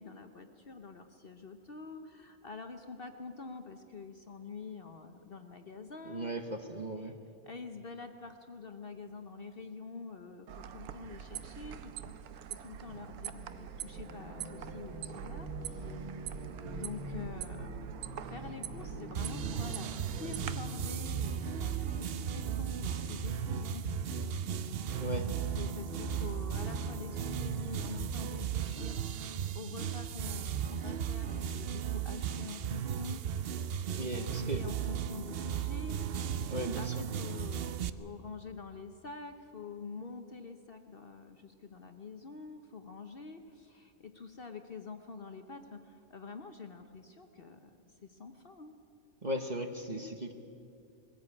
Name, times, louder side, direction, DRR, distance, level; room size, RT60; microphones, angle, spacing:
voice 1, 0.0-6.3 7.0-7.1 7.4-12.2 12.5-16.0 16.7-23.9 24.9-29.0 29.5-33.2 34.0-48.7, left 4 dB, 45° left, 6 dB, 1.0 m, -47 dB
voice 2, 6.1-7.1 25.0-25.3 34.0-34.6 36.5-37.1 49.2-50.3, right 1 dB, 30° right, 5 dB, 1.0 m, -37 dB
sound 1, 10.5-20.5, right 9 dB, 80° right, 1.2 m, -43 dB
sound 2, 13.7-28.6, left 1 dB, 10° left, 3.1 m, -45 dB
sound 3, 19.1-37.9, right 9 dB, 60° right, 0.6 m, -36 dB
20.5 x 15.5 x 8.6 m, 2.6 s
omnidirectional pair, 1.6 m